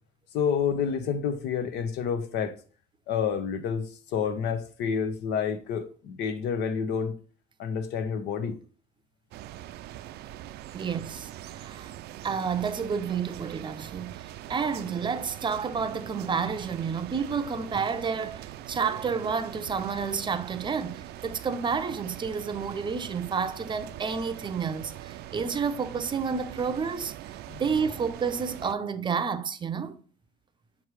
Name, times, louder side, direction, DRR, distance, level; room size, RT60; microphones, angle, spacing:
voice 1, 0.3-2.5 3.1-7.1 7.6-8.5 27.5-27.6, left 7 dB, 85° left, 0.9 m, -29 dB
sound 1, 9.3-28.7, right 13 dB, 70° right, 0.4 m, -42 dB
voice 2, 10.7-11.9 12.2-27.1 27.6-30.0, right 6 dB, 30° right, 0.6 m, -30 dB
7.2 x 3.1 x 4.7 m
cardioid pair, 110°, 17 cm